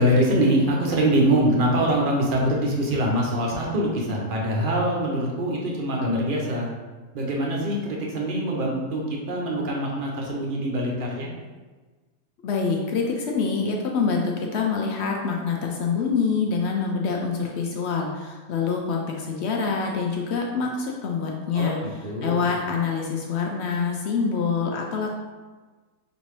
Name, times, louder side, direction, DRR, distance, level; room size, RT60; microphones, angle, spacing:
voice 1, 0.0-6.7 7.1-11.3 21.5-22.5, right 1 dB, 45° right, -2 dB, 0.7 m, -24 dB
voice 2, 12.4-21.8 22.2-25.1, left 5 dB, 65° left, 0 dB, 0.7 m, -26 dB
5.0 x 2.6 x 3.2 m, 1.3 s
omnidirectional pair, 1.5 m